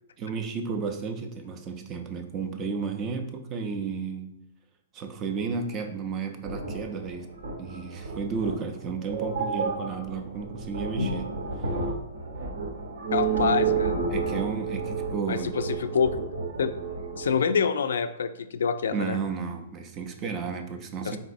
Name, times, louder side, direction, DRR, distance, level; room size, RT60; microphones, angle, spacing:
voice 1, 0.2-4.4 4.9-7.3 7.6-11.4 14.1-15.5 17.4-17.6 18.9-21.2, right 5 dB, 20° right, 5 dB, 0.4 m, -33 dB
Granular Storm, 6.4-17.3, right 4 dB, 75° right, 0.8 m, -31 dB
voice 2, 13.1-14.0 15.3-16.2 16.6-16.7 17.2-19.2 21.1-21.2, left 6 dB, 85° left, 11 dB, 0.3 m, -26 dB
4.1 x 4.0 x 2.5 m, 0.80 s
hypercardioid pair, 165°, 0 cm